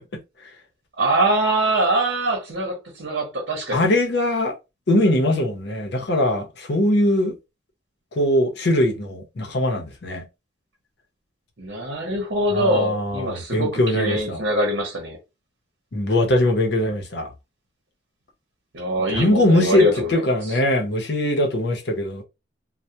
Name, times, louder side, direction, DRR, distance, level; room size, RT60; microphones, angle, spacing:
voice 1, 1.0-3.8 11.6-15.2 18.7-20.6, right 1 dB, 80° right, 0.8 m, -23 dB
voice 2, 3.7-4.5 4.9-7.3 8.1-10.2 12.5-14.4 15.9-17.3 19.1-22.2, left 1 dB, 65° left, 0.7 m, -21 dB
2.2 x 2.1 x 2.7 m
head